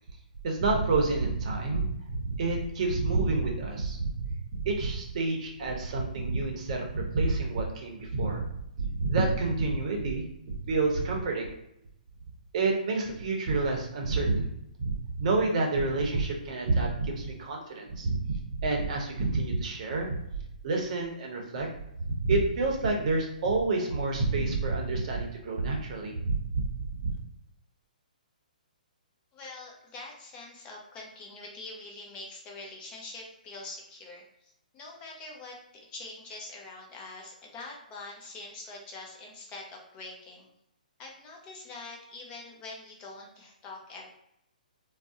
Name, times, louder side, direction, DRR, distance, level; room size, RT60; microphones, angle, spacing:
voice 1, 0.4-8.5 8.8-11.5 12.5-14.5 14.8-20.2 20.6-21.7 22.1-27.1, right 3 dB, 50° right, 1 dB, 0.7 m, -28 dB
voice 2, 29.3-35.6 35.9-40.5 41.0-44.1, left 2 dB, 20° left, -1 dB, 0.5 m, -44 dB
2.5 x 2.0 x 3.6 m, 0.79 s
hypercardioid pair, 140°, 5 cm